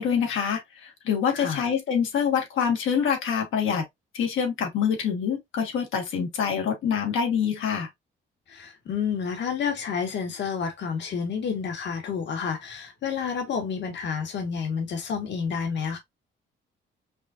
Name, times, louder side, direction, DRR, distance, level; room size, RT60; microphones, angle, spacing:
voice 1, 0.0-3.8 4.1-7.9, left 7 dB, 80° left, 1.7 m, -25 dB
voice 2, 1.3-1.7 8.5-16.0, left 6 dB, 65° left, 1.6 m, -30 dB
5.3 x 2.6 x 2.5 m
cardioid pair, 90°, 20 cm